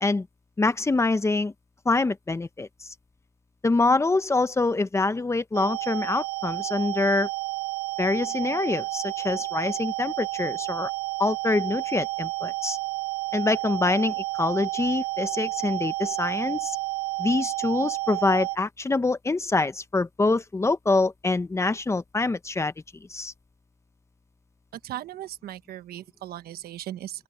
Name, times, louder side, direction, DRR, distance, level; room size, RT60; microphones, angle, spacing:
voice 1, 0.6-1.5 1.8-2.9 3.6-7.3 8.0-10.9 11.2-12.8 13.3-16.8 17.2-22.7 23.1-23.3, left 3 dB, 15° left, 1.0 m, -25 dB
sound 1, 5.5-18.6, right 22 dB, 85° right, 0.6 m, -31 dB
voice 2, 24.7-27.2, right 12 dB, 65° right, 1.2 m, -37 dB
open air
cardioid pair, 110°, 17 cm